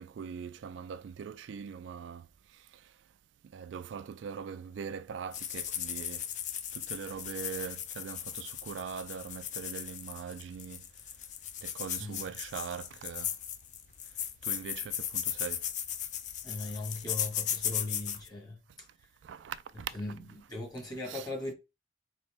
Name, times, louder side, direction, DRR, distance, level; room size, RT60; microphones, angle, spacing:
voice 1, 0.0-2.3 2.5-2.9 3.5-6.3 6.7-10.8 11.6-13.4 14.4-15.6 19.2-19.9 21.0-21.3, right 7 dB, 80° right, 0.3 m, -41 dB
sound 1, 5.3-18.3, left 10 dB, 40° left, 0.3 m, -37 dB
voice 2, 16.4-19.1 19.9-21.5, left 2 dB, 20° left, 1.3 m, -39 dB
4.1 x 2.9 x 3.3 m
head